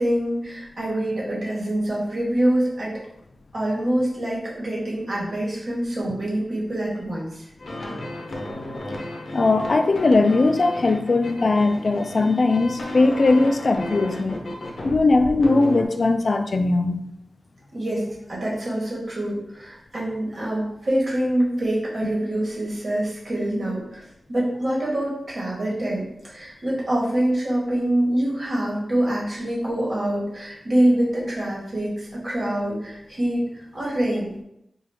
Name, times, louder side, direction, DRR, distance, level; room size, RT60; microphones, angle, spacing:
voice 1, 0.0-2.9 3.5-7.4 17.7-24.0 24.3-33.4 33.7-34.4, right 1 dB, 60° right, -5 dB, 1.5 m, -25 dB
sound 1, 7.6-15.8, left 1 dB, 75° left, 0.7 m, -33 dB
voice 2, 9.3-14.4 14.8-17.0, left 3 dB, 60° left, 6 dB, 0.3 m, -19 dB
3.8 x 2.3 x 3.4 m, 0.79 s
wide cardioid pair, 75°, 0 cm